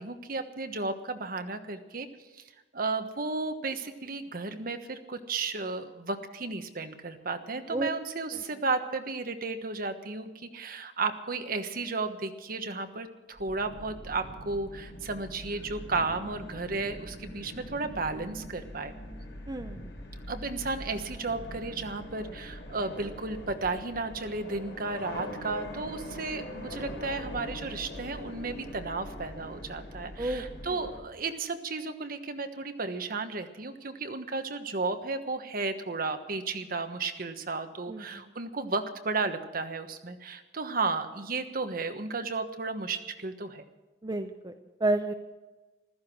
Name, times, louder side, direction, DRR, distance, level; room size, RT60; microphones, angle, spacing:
voice 1, 0.0-2.1 2.3-2.4 2.7-18.9 20.3-43.6, right 3 dB, 55° right, 8 dB, 1.3 m, -33 dB
sound 1, 13.4-31.0, equal, 80° left, 4.0 m, -42 dB
voice 2, 19.5-19.8 30.2-30.7 37.9-38.0 44.0-44.5 44.8-45.1, right 2 dB, 25° right, 6 dB, 0.7 m, -30 dB
15.0 x 14.0 x 6.2 m, 1.1 s
head